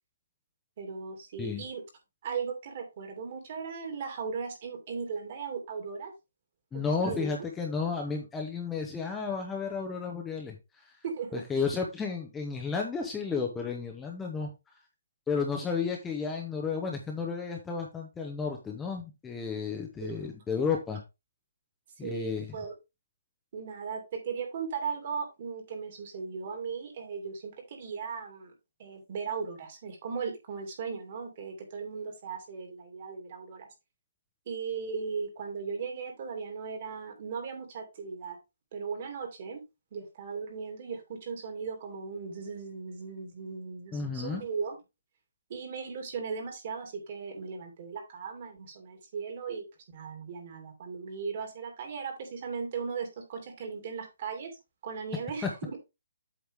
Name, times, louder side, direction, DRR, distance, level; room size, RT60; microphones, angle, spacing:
voice 1, 0.8-1.8 2.2-6.1 6.7-7.4 11.0-11.4 20.0-20.4 22.0-22.7 23.5-28.5 28.8-33.7 34.5-38.4 38.7-39.6 39.9-44.8 45.5-49.6 49.9-54.5 54.8-55.8, right 5 dB, 40° right, 4 dB, 2.4 m, -37 dB
voice 2, 6.7-10.6 11.3-14.5 15.3-21.0 22.0-22.5 43.9-44.4, left 5 dB, 10° left, 1 dB, 0.9 m, -32 dB
8.1 x 4.9 x 3.5 m, 0.24 s
hypercardioid pair, 165°, 0 cm